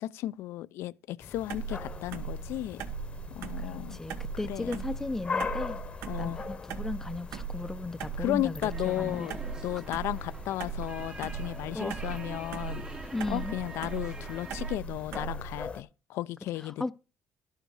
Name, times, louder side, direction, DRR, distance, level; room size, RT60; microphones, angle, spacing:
voice 1, 0.0-2.8 3.3-4.0 4.5-4.8 6.1-6.4 8.2-9.4 9.6-16.9, left 15 dB, 75° left, 0.5 m, -34 dB
sound 1, 1.2-15.8, left 5 dB, 25° left, 0.9 m, -42 dB
sound 2, 1.5-15.7, right 6 dB, 80° right, 1.2 m, -39 dB
voice 2, 3.6-5.8 6.2-9.3 11.7-12.0 13.1-13.6 16.6-16.9, left 2 dB, 10° left, 0.5 m, -36 dB
sound 3, 8.7-14.8, right 3 dB, 15° right, 0.8 m, -45 dB
12.0 x 6.5 x 4.8 m
cardioid pair, 140°, 4 cm